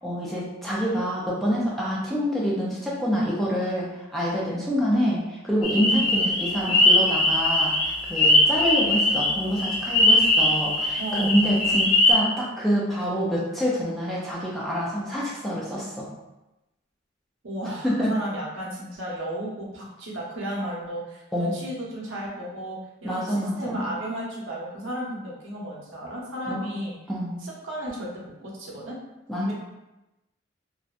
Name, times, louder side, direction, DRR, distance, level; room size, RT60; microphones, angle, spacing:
voice 1, 0.0-16.1 17.8-18.2 21.3-21.6 23.0-23.9 26.5-26.7 27.1-27.4 29.3-29.5, equal, ahead, -6 dB, 0.4 m, -26 dB
sound 1, 5.6-12.1, left 1 dB, 75° left, 0.7 m, -21 dB
voice 2, 11.0-11.5 17.4-27.0 27.4-29.0 29.3-29.5, equal, 80° right, -4 dB, 0.7 m, -34 dB
2.6 x 2.1 x 2.4 m, 0.98 s
head